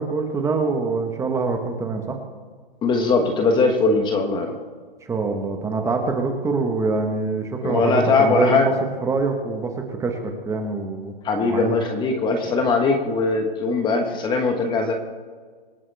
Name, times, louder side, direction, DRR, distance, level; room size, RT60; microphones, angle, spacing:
voice 1, 0.0-2.1 5.0-8.7 9.0-11.1 11.4-11.7, right 4 dB, 10° right, 4 dB, 1.3 m, -24 dB
voice 2, 2.8-4.5 7.6-8.7 11.2-14.9, left 3 dB, 15° left, 4 dB, 1.3 m, -20 dB
26.0 x 8.6 x 3.5 m, 1.6 s
hypercardioid pair, 140°, 29 cm